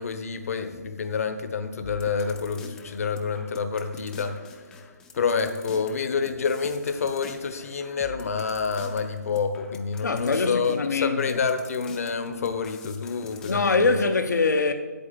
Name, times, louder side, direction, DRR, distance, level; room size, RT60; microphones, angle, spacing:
voice 1, 0.0-4.4 5.1-14.0, left 5 dB, 55° left, 1.1 m, -28 dB
sound 1, 1.8-14.2, left 4 dB, 5° left, 0.4 m, -47 dB
voice 2, 10.0-11.4 13.5-14.7, left 3 dB, 80° left, 1.0 m, -23 dB
8.4 x 7.3 x 8.5 m
hypercardioid pair, 160°, 9 cm